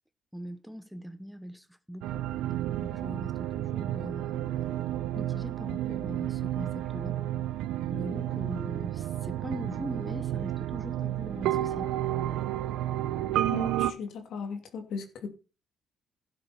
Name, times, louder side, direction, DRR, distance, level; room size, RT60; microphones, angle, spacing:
voice 1, 0.3-2.2 2.8-4.8 5.1-7.2 7.9-12.0, equal, ahead, 0.8 m, -41 dB
sound 1, 2.0-13.9, right 13 dB, 85° right, 0.9 m, -31 dB
voice 2, 13.5-15.3, left 5 dB, 70° left, 2.6 m, -37 dB
12.0 x 8.1 x 4.3 m
cardioid pair, 100°, 0 cm